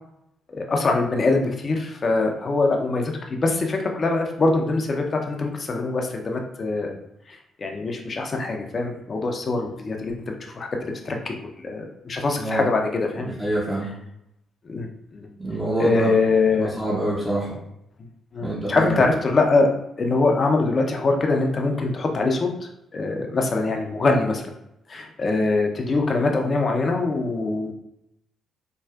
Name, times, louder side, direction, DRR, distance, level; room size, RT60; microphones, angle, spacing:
voice 1, 0.5-7.0 7.3-13.3 14.6-15.3 15.8-16.7 18.0-19.7 20.0-24.5 24.9-27.7, left 3 dB, 45° left, 2 dB, 0.6 m, -23 dB
voice 2, 12.4-12.7 13.2-13.9 15.4-16.1 16.5-17.6 18.4-19.0, right 1 dB, 15° right, -7 dB, 1.0 m, -26 dB
4.4 x 2.4 x 2.4 m, 0.79 s
hypercardioid pair, 45°, 0 cm